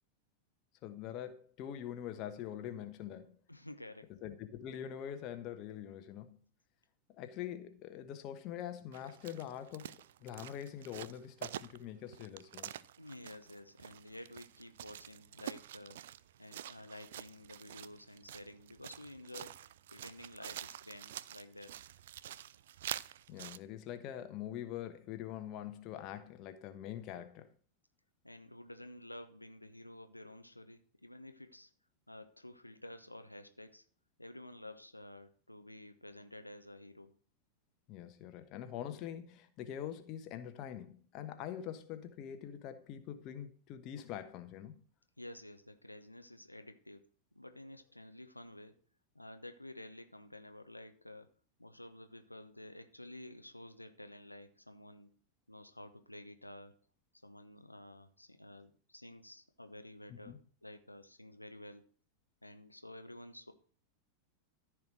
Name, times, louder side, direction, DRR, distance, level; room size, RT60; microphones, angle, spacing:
voice 1, 0.8-3.4 4.2-6.4 7.1-9.9 10.2-12.7 23.3-27.5 37.9-44.8 60.1-60.4, left 10 dB, 40° left, 1.2 m, -44 dB
voice 2, 3.5-4.1 13.0-16.0 16.4-19.6 19.9-21.8 28.2-31.7 32.1-33.8 34.2-37.1 45.2-47.0 47.3-48.7 49.1-51.3 51.6-55.1 55.5-56.8 57.2-61.9 62.4-63.5, left 1 dB, 85° left, 0.8 m, -51 dB
sound 1, 8.9-23.6, right 11 dB, 60° right, 0.4 m, -47 dB
14.0 x 4.8 x 6.3 m
figure-of-eight pair, 90°, 0 cm